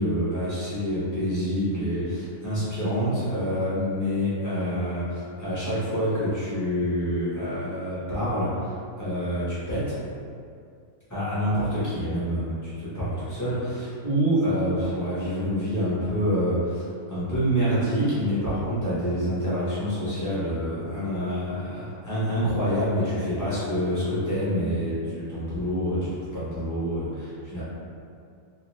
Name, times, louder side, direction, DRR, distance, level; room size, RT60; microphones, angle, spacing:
voice 1, 0.0-10.0 11.1-27.6, equal, 20° left, -12 dB, 0.5 m, -27 dB
2.5 x 2.2 x 3.0 m, 2.3 s
omnidirectional pair, 1.6 m